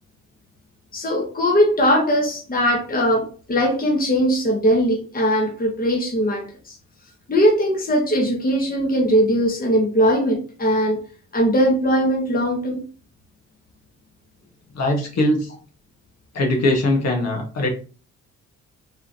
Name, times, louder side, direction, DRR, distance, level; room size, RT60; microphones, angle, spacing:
voice 1, 0.9-6.8 7.3-11.0 11.3-12.8, equal, 30° left, 0 dB, 1.4 m, -20 dB
voice 2, 14.7-15.5 16.3-17.7, left 1 dB, 60° left, 1 dB, 1.7 m, -21 dB
4.7 x 3.7 x 3.0 m, 0.37 s
cardioid pair, 90°, 30 cm